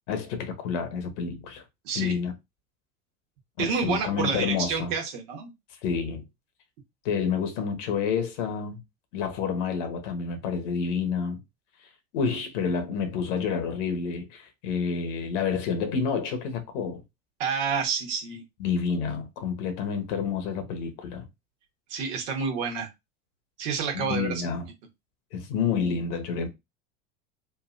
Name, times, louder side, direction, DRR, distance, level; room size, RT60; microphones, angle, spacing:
voice 1, 0.1-1.6 1.9-2.3 3.6-4.9 5.8-6.2 7.0-8.8 9.1-11.4 12.1-17.0 18.6-21.2 23.9-24.7 25.3-26.5, left 6 dB, 60° left, 1.0 m, -29 dB
voice 2, 1.8-2.2 3.6-5.5 17.4-18.4 21.9-22.9 23.6-24.5, right 5 dB, 60° right, 1.3 m, -29 dB
3.2 x 2.5 x 2.5 m
hypercardioid pair, 85°, 40 cm